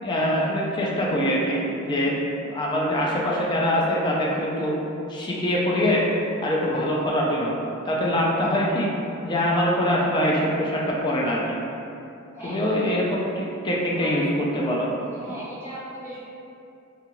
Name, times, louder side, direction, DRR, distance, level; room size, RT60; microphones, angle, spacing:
voice 1, 0.0-2.1 2.4-4.8 5.1-6.1 6.4-7.5 7.8-8.9 9.2-11.6 12.4-14.9, equal, 20° left, -4 dB, 0.4 m, -23 dB
voice 2, 15.1-16.2, right 1 dB, 10° right, -11 dB, 0.7 m, -38 dB
2.8 x 2.4 x 2.9 m, 2.7 s
head